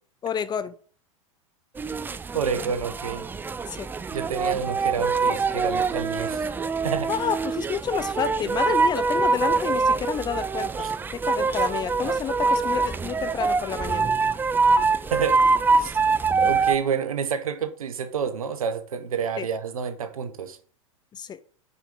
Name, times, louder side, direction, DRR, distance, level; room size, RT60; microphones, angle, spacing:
voice 1, 0.2-0.7 3.7-3.9 7.1-14.1 19.4-19.5 21.1-21.4, left 8 dB, 25° left, 0.7 m, -30 dB
sound 1, 1.8-16.8, right 4 dB, 10° right, 0.4 m, -24 dB
voice 2, 2.3-3.3 4.1-6.5 6.8-7.1 10.8-10.9 15.1-15.4 15.7-16.1 16.4-20.6, right 6 dB, 80° right, 1.1 m, -29 dB
6.2 x 5.3 x 5.5 m
hypercardioid pair, 95°, 18 cm